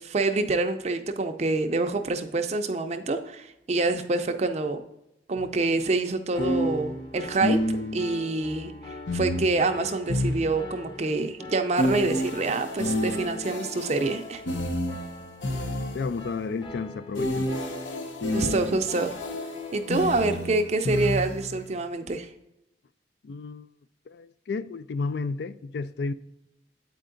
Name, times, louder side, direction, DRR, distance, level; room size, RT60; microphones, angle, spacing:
voice 1, 0.0-4.8 5.3-7.6 7.9-8.7 9.1-14.4 18.3-19.2 19.7-22.3, right 3 dB, 35° right, 0.5 m, -26 dB
sound 1, 5.4-5.5 6.4-8.2 9.1-11.0 11.8-16.3 17.1-21.7, left 1 dB, 85° left, 0.8 m, -30 dB
Piano, 6.3-20.0, left 1 dB, 25° left, 0.8 m, -43 dB
voice 2, 15.9-17.5 23.2-23.7 24.1-26.1, left 4 dB, 60° left, 0.3 m, -32 dB
8.3 x 4.5 x 3.8 m
head